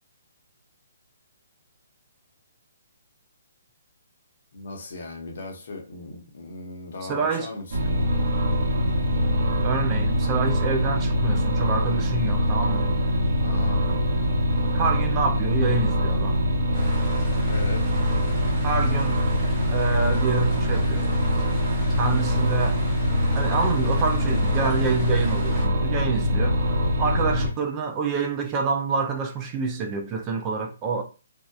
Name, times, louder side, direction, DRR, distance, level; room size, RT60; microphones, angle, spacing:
voice 1, 4.5-8.2 13.4-13.8 17.5-17.8, left 2 dB, 60° left, 0.8 m, -37 dB
voice 2, 7.1-7.5 9.6-12.9 14.7-16.5 18.6-19.2 19.7-21.1 22.0-22.8 23.3-26.6 27.0-31.0, right 5 dB, 20° right, 0.3 m, -27 dB
sound 1, 7.7-27.5, equal, 55° right, 0.7 m, -23 dB
sound 2, 16.7-25.7, equal, 5° left, 0.8 m, -40 dB
2.7 x 2.0 x 2.3 m
hypercardioid pair, 165°, 0 cm